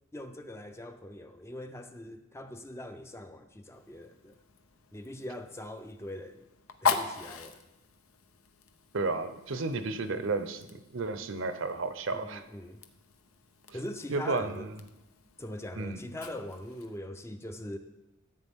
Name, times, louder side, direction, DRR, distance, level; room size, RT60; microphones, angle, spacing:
voice 1, 0.1-4.4 4.9-6.5 6.8-7.6 12.1-12.8 13.7-14.7 15.4-17.8, left 1 dB, 15° left, 7 dB, 0.5 m, -42 dB
Fire, 3.7-17.0, left 5 dB, 90° left, 0.8 m, -40 dB
voice 2, 8.9-12.4 14.1-14.7 15.7-16.0, right 3 dB, 65° right, 10 dB, 0.7 m, -32 dB
14.0 x 8.4 x 3.6 m, 0.97 s
head